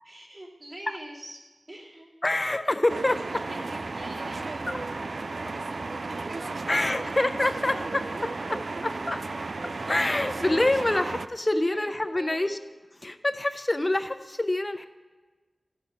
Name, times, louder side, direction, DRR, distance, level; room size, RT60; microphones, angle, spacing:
voice 1, 0.1-2.1 2.6-2.8 3.5-4.7 6.0-7.1 7.4-7.9 11.5-12.6, right 1 dB, 45° right, -4 dB, 2.6 m, -45 dB
voice 2, 2.2-3.2 4.7-4.8 6.7-9.2 9.6-12.6 13.0-14.9, left 1 dB, 25° left, 9 dB, 0.4 m, -26 dB
sound 1, 2.9-11.3, right 3 dB, 65° right, 0.3 m, -34 dB
13.0 x 6.8 x 5.6 m, 1.3 s
wide cardioid pair, 85°, 0 cm